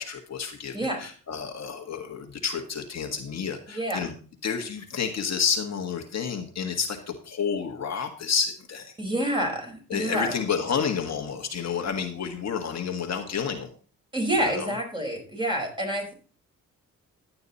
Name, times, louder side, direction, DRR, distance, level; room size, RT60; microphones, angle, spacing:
voice 1, 0.0-4.1 4.4-8.9 9.9-13.7 14.4-14.7, left 6 dB, 50° left, 4 dB, 1.6 m, -30 dB
voice 2, 3.7-4.1 9.0-10.3 14.1-16.1, right 1 dB, 15° right, 1 dB, 5.0 m, -28 dB
11.5 x 8.7 x 4.2 m, 0.38 s
cardioid pair, 80°, 34 cm